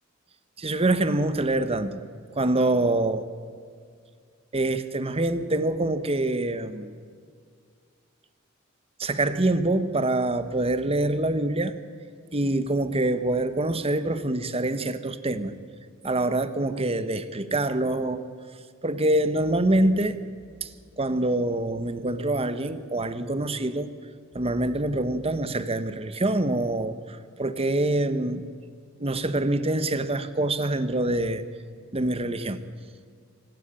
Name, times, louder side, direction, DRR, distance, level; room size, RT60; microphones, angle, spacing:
voice 1, 0.6-2.0 2.4-3.3 4.5-6.9 9.0-11.7 12.3-15.5 16.0-18.2 18.8-20.2 20.6-20.7 21.0-23.9 24.3-28.4 29.0-31.4 31.9-32.6, right 2 dB, 30° right, 12 dB, 1.1 m, -25 dB
24.5 x 13.0 x 10.0 m, 2.1 s
head